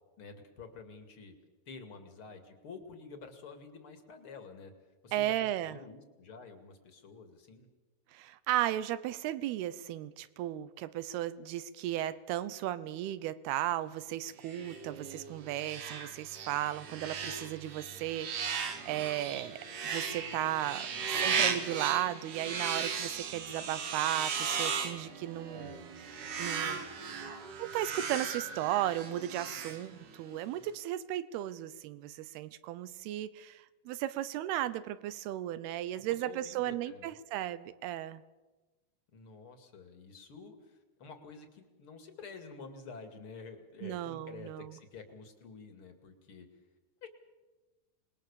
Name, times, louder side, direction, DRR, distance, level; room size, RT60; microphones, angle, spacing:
voice 1, 0.2-1.4 1.7-4.7 5.0-7.7 20.9-21.4 25.5-25.8 36.1-37.1 39.1-46.5 47.0-47.1, left 4 dB, 40° left, 7 dB, 2.5 m, -49 dB
voice 2, 5.1-5.8 8.1-26.8 27.6-38.2 43.8-44.8, right 13 dB, 80° right, 16 dB, 2.8 m, -35 dB
sound 1, 14.4-30.3, right 6 dB, 55° right, 3.3 m, -37 dB
27.0 x 20.5 x 7.0 m, 1.2 s
omnidirectional pair, 4.6 m